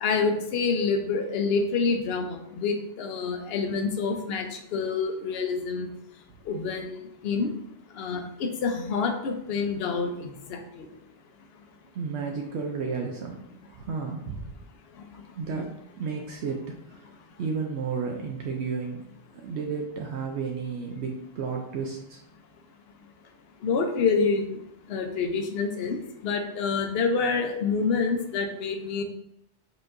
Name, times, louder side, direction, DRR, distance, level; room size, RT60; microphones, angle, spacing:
voice 1, 0.0-5.9 6.5-7.5 8.0-10.9 23.6-24.6 24.9-29.0, left 4 dB, 65° left, 5 dB, 0.8 m, -27 dB
voice 2, 11.9-13.4 13.7-14.5 15.4-17.0 17.4-19.1 19.4-22.2, right 5 dB, 70° right, 1 dB, 0.8 m, -32 dB
4.5 x 4.2 x 2.6 m, 0.78 s
omnidirectional pair, 1.2 m